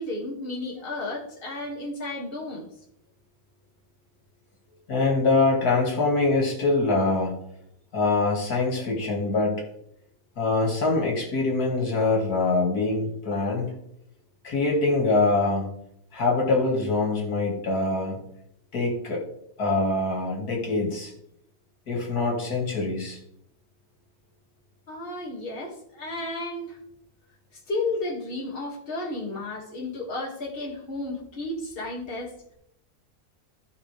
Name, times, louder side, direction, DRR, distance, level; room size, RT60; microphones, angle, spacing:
voice 1, 0.0-2.7 24.9-26.8 27.7-32.5, left 2 dB, 40° left, -3 dB, 2.3 m, -33 dB
voice 2, 4.9-7.3 7.9-9.7 10.4-13.7 14.4-15.7 16.1-18.2 18.7-19.2 19.6-21.1 21.9-23.2, left 3 dB, 90° left, -1 dB, 2.6 m, -24 dB
15.5 x 5.4 x 3.4 m, 0.75 s
omnidirectional pair, 1.6 m